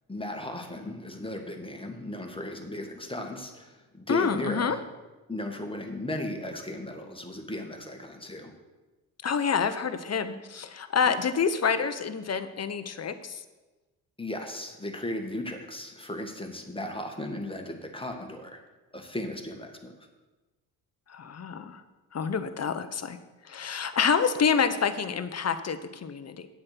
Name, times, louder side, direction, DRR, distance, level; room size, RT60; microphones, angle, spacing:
voice 1, 0.1-4.8 5.3-8.5 11.0-11.1 14.2-18.6 18.9-19.9, left 1 dB, 10° left, 3 dB, 2.0 m, -36 dB
voice 2, 4.1-4.8 9.2-13.4 21.1-21.8 22.1-23.2 23.4-26.5, left 6 dB, 35° left, 10 dB, 1.1 m, -27 dB
9.0 x 7.6 x 6.0 m, 1.2 s
hypercardioid pair, 55°, 46 cm